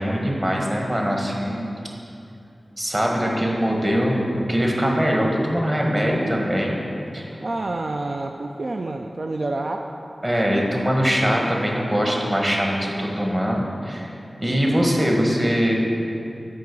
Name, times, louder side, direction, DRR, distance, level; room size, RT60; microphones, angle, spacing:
voice 1, 0.0-1.7 2.8-4.2 4.5-6.8 7.1-7.3 10.2-14.1 14.4-15.7, equal, 25° right, -1 dB, 1.4 m, -22 dB
voice 2, 7.4-9.9, right 2 dB, 65° right, 3 dB, 0.3 m, -28 dB
7.6 x 4.7 x 5.3 m, 2.6 s
cardioid pair, 45°, 0 cm